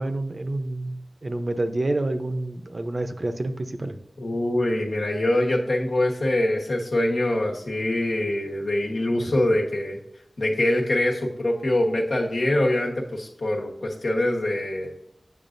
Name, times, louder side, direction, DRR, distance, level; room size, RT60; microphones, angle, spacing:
voice 1, 0.0-4.0, right 2 dB, 50° right, 8 dB, 0.6 m, -28 dB
voice 2, 4.2-10.0 10.4-15.0, left 1 dB, 90° left, -1 dB, 1.3 m, -24 dB
8.8 x 6.1 x 2.6 m, 0.76 s
wide cardioid pair, 60°, 0 cm